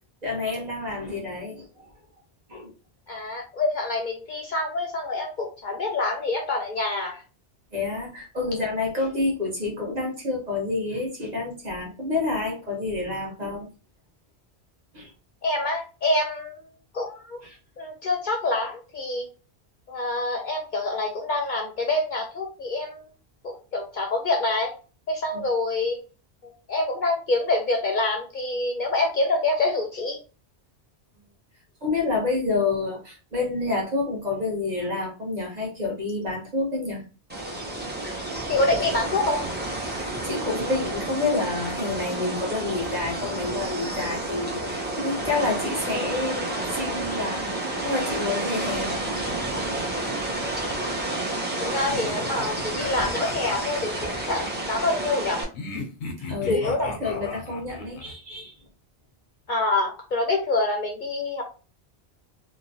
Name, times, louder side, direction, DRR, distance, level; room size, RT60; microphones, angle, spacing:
voice 1, 0.2-1.9 2.5-2.7 7.7-13.7 14.9-15.1 17.4-17.6 25.3-25.4 31.8-37.0 39.9-47.5 47.8-49.2 55.7-55.9 56.2-56.6 57.0-58.6, left 3 dB, 40° right, -2 dB, 1.0 m, -28 dB
voice 2, 3.1-7.2 15.4-16.6 16.9-17.4 17.8-19.3 19.9-23.0 23.4-24.7 25.1-26.0 26.4-30.2 38.5-39.4 50.8-51.0 51.6-55.4 56.5-56.9 57.1-57.3 59.5-61.4, left 2 dB, 55° left, 2 dB, 0.6 m, -26 dB
sound 1, 37.3-55.4, right 2 dB, 15° right, 0.5 m, -30 dB
sound 2, 51.9-54.6 55.5-58.1, left 3 dB, 90° left, 0.9 m, -37 dB
2.9 x 2.2 x 2.6 m, 0.34 s
omnidirectional pair, 1.1 m